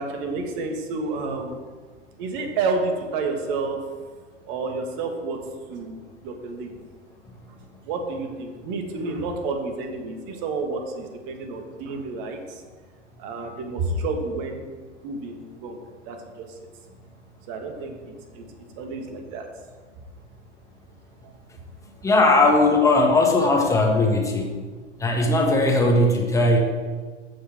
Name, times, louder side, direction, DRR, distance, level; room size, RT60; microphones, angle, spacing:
voice 1, 0.0-1.6 2.2-3.8 4.4-5.4 5.7-6.8 7.8-12.6 13.2-14.7 15.0-15.8 16.0-16.5 17.5-17.9 18.3-18.4 18.8-19.5 21.2-21.3, right 3 dB, 45° right, 4 dB, 1.6 m, -30 dB
voice 2, 22.0-24.5 25.0-26.6, left 2 dB, 10° left, 0 dB, 1.4 m, -18 dB
14.5 x 4.9 x 3.6 m, 1.5 s
hypercardioid pair, 100°, 36 cm